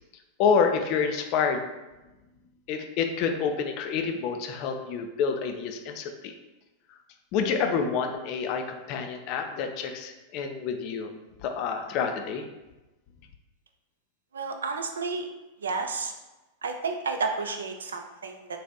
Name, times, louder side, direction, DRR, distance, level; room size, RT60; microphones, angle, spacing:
voice 1, 0.4-1.6 2.7-6.3 7.3-11.1 11.4-12.4, left 6 dB, 40° left, 5 dB, 0.3 m, -28 dB
voice 2, 14.3-15.3 15.6-16.1 16.6-18.6, right 4 dB, 70° right, 5 dB, 0.3 m, -31 dB
4.0 x 2.4 x 2.3 m, 1.0 s
figure-of-eight pair, 90°, 0 cm